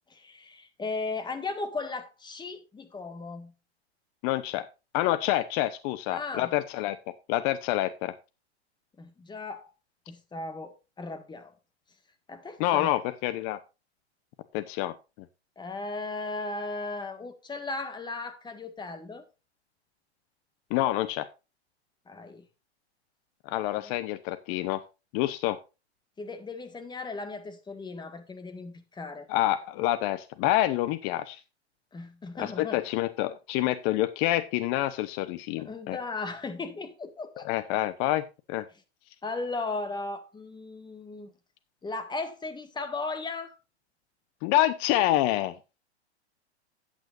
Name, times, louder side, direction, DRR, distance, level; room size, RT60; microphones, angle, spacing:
voice 1, 0.1-3.5 6.1-6.5 9.0-9.7 10.1-11.5 12.3-12.9 15.6-19.2 22.1-22.4 23.8-23.9 26.2-29.3 31.9-32.8 35.6-37.5 39.2-41.3 41.8-43.6, left 3 dB, 15° left, 1.8 m, -36 dB
voice 2, 4.2-4.7 4.9-7.0 7.3-8.1 12.6-13.6 14.5-14.9 20.7-21.3 23.5-24.8 25.1-25.6 29.3-31.4 32.4-36.0 37.4-38.2 38.5-38.6 44.4-45.5, left 14 dB, 40° left, 0.9 m, -27 dB
13.5 x 9.0 x 2.5 m
hypercardioid pair, 115°, 34 cm